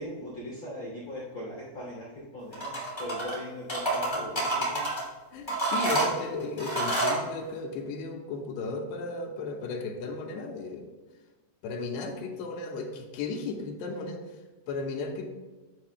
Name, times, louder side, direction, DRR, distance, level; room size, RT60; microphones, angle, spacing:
voice 1, 0.0-4.8, equal, 35° left, -7 dB, 3.3 m, -39 dB
sound 1, 2.5-3.4 3.7-5.0 5.5-7.2, right 2 dB, 10° left, 1.4 m, -28 dB
voice 2, 5.3-10.9 11.6-14.2 14.7-15.3, left 3 dB, 85° left, 2 dB, 3.0 m, -35 dB
11.5 x 7.5 x 2.3 m, 1.3 s
omnidirectional pair, 4.8 m